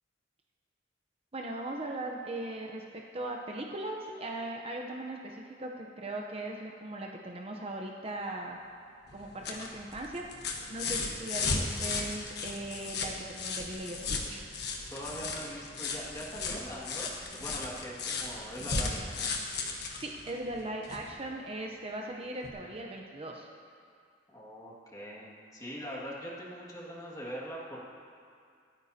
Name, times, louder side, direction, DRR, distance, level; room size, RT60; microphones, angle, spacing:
voice 1, 1.3-8.6 9.1-14.4 20.0-23.5, right 2 dB, 30° right, 0 dB, 0.7 m, -39 dB
sound 1, 9.1-21.1 22.4-22.5, left 4 dB, 60° left, 1.3 m, -36 dB
voice 2, 14.9-19.4 24.3-27.9, equal, 20° left, -4 dB, 1.9 m, -42 dB
26.0 x 9.2 x 2.8 m, 2.3 s
head